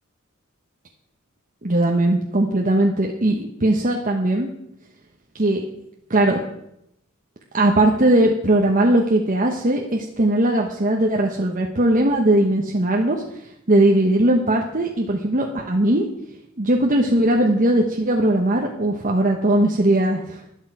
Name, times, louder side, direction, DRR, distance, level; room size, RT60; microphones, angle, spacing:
voice 1, 1.6-4.5 5.3-5.6 6.1-6.4 7.5-13.2 13.7-16.1 16.6-20.4, right 1 dB, 40° right, 0 dB, 1.2 m, -19 dB
12.5 x 11.5 x 4.8 m, 0.80 s
head